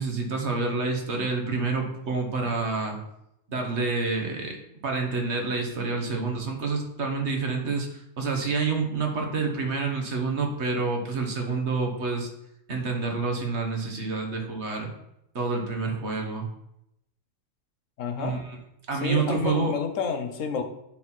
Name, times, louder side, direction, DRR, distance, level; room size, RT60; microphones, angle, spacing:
voice 1, 0.0-3.0 3.5-4.6 4.8-12.3 12.7-14.9 15.3-16.4 18.2-18.5 18.9-19.7, right 4 dB, 60° right, 2 dB, 1.6 m, -28 dB
voice 2, 18.0-18.4 19.0-20.6, left 6 dB, 80° left, 6 dB, 1.2 m, -30 dB
10.0 x 4.1 x 4.4 m, 0.83 s
omnidirectional pair, 1.3 m